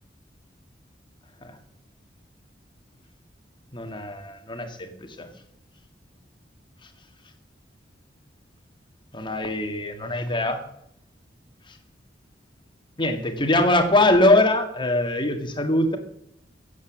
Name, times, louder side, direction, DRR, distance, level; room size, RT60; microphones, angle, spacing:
voice 1, 3.7-5.3 9.1-10.6 11.7-11.8 13.0-16.0, left 1 dB, 25° left, 6 dB, 1.9 m, -22 dB
15.0 x 8.4 x 7.4 m, 0.75 s
head